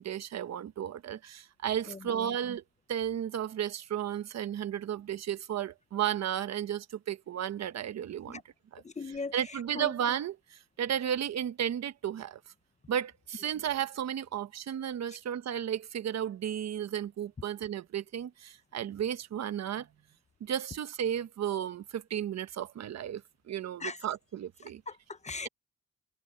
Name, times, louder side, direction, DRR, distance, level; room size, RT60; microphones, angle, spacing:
voice 1, 0.0-2.6 2.9-8.4 8.7-8.8 9.3-12.4 12.9-19.9 20.4-23.2 23.5-24.8, right 10 dB, 60° right, 1.3 m, -33 dB
voice 2, 1.9-2.3 8.3-8.4 8.8-9.3 9.7-9.9 23.8-24.0 24.9-25.5, left 4 dB, 25° left, 0.9 m, -39 dB
cardioid pair, 90°, 30 cm